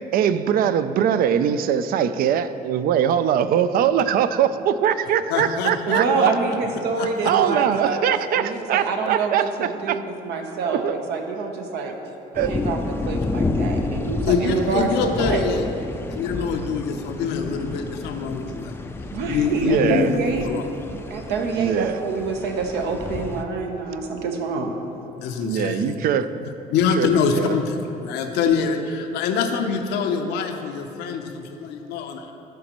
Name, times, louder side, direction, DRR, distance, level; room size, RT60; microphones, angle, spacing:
voice 1, 0.1-6.3 7.2-9.5 9.9-10.0 10.8-11.0 12.3-12.5 19.6-20.1 21.5-22.0 25.4-26.3 27.0-27.1 27.3-27.5, right 9 dB, 60° right, 12 dB, 0.4 m, -21 dB
voice 2, 5.3-6.6 6.9-7.3 14.3-15.6 16.1-18.7 19.3-20.7 25.2-26.0 26.4-32.3, left 5 dB, 85° left, 5 dB, 0.7 m, -25 dB
voice 3, 5.9-8.0 8.3-11.9 12.5-12.8 13.1-15.4 19.1-20.5 21.1-24.8, right 4 dB, 80° right, 3 dB, 0.9 m, -26 dB
sound 1, 12.3-23.4, left 2 dB, 15° left, 0.4 m, -30 dB
12.5 x 5.1 x 3.0 m, 2.9 s
cardioid pair, 110°, 17 cm